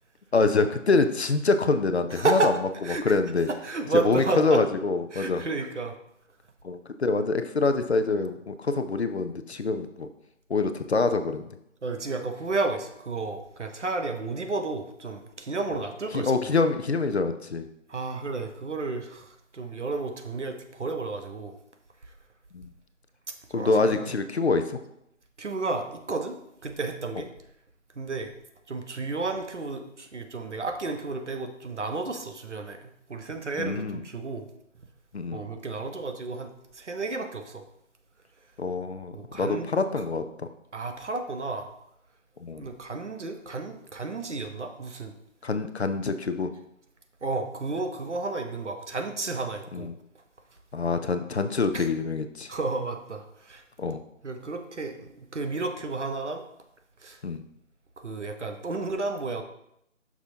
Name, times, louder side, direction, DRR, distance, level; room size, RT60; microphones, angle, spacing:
voice 1, 0.3-2.5 3.0-3.5 3.9-5.4 6.6-10.1 10.5-11.6 16.1-17.7 22.5-22.7 23.5-24.8 33.6-34.0 35.1-35.4 38.6-40.5 42.4-42.7 45.4-46.5 49.7-49.9 50.7-52.5 53.8-54.0 57.2-57.4, left 3 dB, 55° left, 9 dB, 0.6 m, -25 dB
voice 2, 2.1-2.5 2.8-3.2 3.5-4.6 5.1-5.9 11.8-16.3 17.9-21.6 23.5-24.1 25.4-27.3 28.0-28.3 28.7-34.5 35.3-37.6 39.1-39.7 40.7-41.7 42.6-45.1 47.2-49.9 51.7-51.9 52.5-53.6 54.2-56.4 57.0-57.2 58.0-59.4, right 3 dB, 65° right, 5 dB, 1.1 m, -32 dB
7.8 x 6.1 x 2.8 m, 0.78 s
figure-of-eight pair, 155°, 39 cm